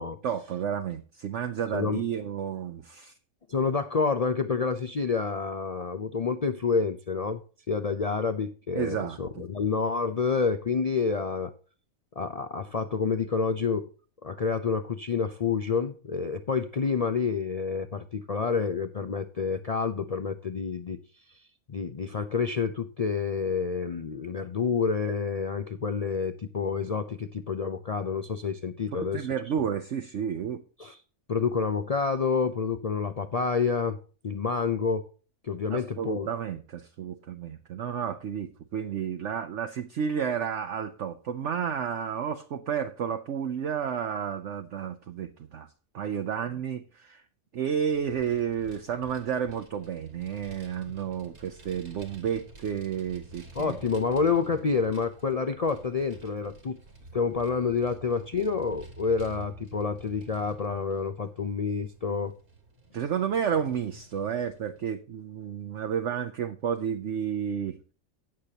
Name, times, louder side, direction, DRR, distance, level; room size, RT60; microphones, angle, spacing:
voice 1, 0.2-3.1 8.7-9.4 28.9-30.6 35.7-45.7 45.9-47.2 47.5-53.8 62.9-67.8, right 8 dB, 60° right, 1.0 m, -31 dB
voice 2, 3.5-7.4 7.7-11.5 12.2-13.9 14.2-21.0 21.7-29.3 30.8-31.0 31.3-34.0 34.2-35.1 35.4-36.3 53.6-56.8 57.1-62.4, left 5 dB, 80° left, 0.3 m, -28 dB
Vehicle, 47.9-64.8, right 2 dB, 75° right, 2.8 m, -50 dB
17.0 x 6.7 x 2.8 m
omnidirectional pair, 1.5 m